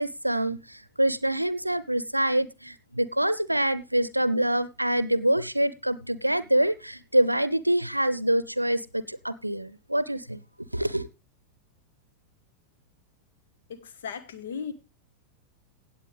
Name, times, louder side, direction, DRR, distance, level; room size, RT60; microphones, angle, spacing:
voice 1, 0.0-10.4 10.7-11.1, right 1 dB, 85° right, 0.6 m, -25 dB
voice 2, 13.7-14.7, left 6 dB, 60° left, 1.6 m, -36 dB
16.5 x 8.1 x 3.5 m
figure-of-eight pair, 90°, 0 cm